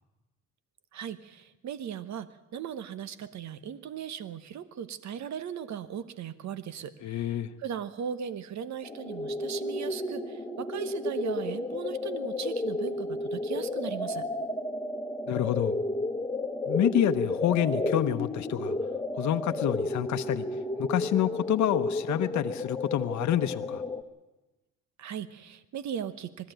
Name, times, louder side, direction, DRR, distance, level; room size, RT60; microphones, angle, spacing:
voice 1, 0.9-14.3 25.0-26.5, right 8 dB, 65° right, 14 dB, 1.1 m, -38 dB
voice 2, 7.0-7.5 15.3-15.7 16.7-18.7 19.2-20.5 20.8-23.8, left 11 dB, 70° left, 8 dB, 0.9 m, -28 dB
sound 1, 8.8-24.0, left 2 dB, 15° left, 1.4 m, -32 dB
20.5 x 14.0 x 9.0 m, 1.0 s
cardioid pair, 90°, 30 cm